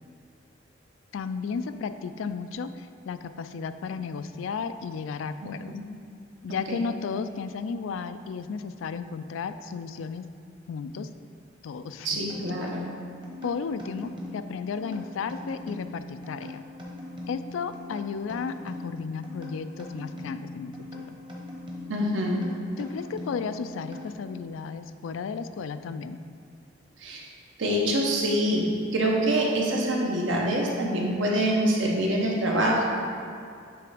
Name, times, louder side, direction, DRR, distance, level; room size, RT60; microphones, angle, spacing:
voice 1, 1.1-5.8 6.4-10.3 10.7-11.1 11.6-12.1 13.4-16.6 17.3-21.2 22.8-26.2, left 5 dB, 85° left, 11 dB, 0.3 m, -34 dB
voice 2, 12.0-12.8 21.9-22.4 27.0-27.2 27.6-28.6 28.9-32.8, right 1 dB, 75° right, -2 dB, 1.1 m, -25 dB
sound 1, 12.3-24.5, left 2 dB, 25° right, 1.0 m, -41 dB
7.9 x 3.4 x 5.0 m, 2.4 s
head